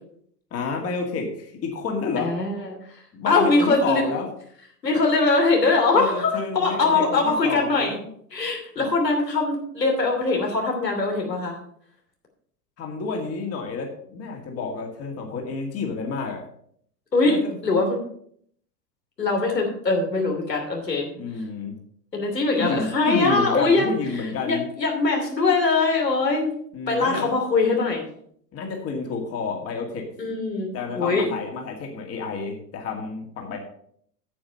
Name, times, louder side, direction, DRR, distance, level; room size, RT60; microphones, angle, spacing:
voice 1, 0.5-2.4 3.1-4.3 5.9-8.0 8.8-8.9 12.8-16.4 17.2-17.6 21.1-21.7 22.6-24.7 26.7-27.3 28.5-30.1 30.7-33.6, left 4 dB, 30° left, 2 dB, 2.3 m, -30 dB
voice 2, 2.2-2.7 3.3-4.0 4.8-8.0 8.3-11.6 17.1-17.3 17.6-18.0 19.2-21.1 22.1-26.5 26.9-28.0 30.2-31.2, left 3 dB, 85° left, 1 dB, 3.1 m, -22 dB
8.9 x 7.8 x 5.6 m, 0.65 s
figure-of-eight pair, 95°, 48 cm